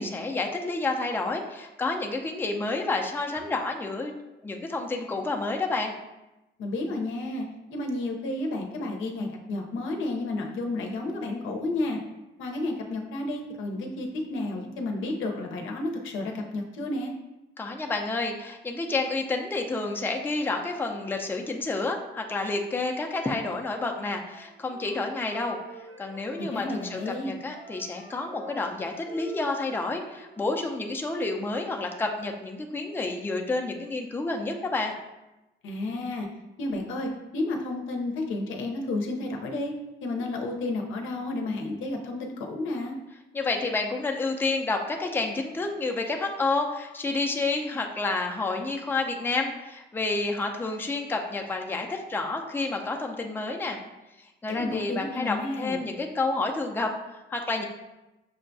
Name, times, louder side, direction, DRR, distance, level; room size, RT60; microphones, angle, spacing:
voice 1, 0.0-4.1 4.4-5.9 17.6-25.6 26.0-34.9 43.3-53.8 54.2-57.6, left 3 dB, 10° left, 2 dB, 0.4 m, -29 dB
voice 2, 6.6-7.4 7.7-12.0 12.4-17.1 26.4-27.4 35.6-36.3 36.6-39.7 40.0-43.0 54.5-55.8, left 2 dB, 85° left, 1 dB, 0.6 m, -31 dB
Wind instrument woodwind instrument, 24.3-30.7, right 1 dB, 70° right, 1.1 m, -46 dB
6.2 x 2.2 x 2.6 m, 1.0 s
cardioid pair, 90°, 20 cm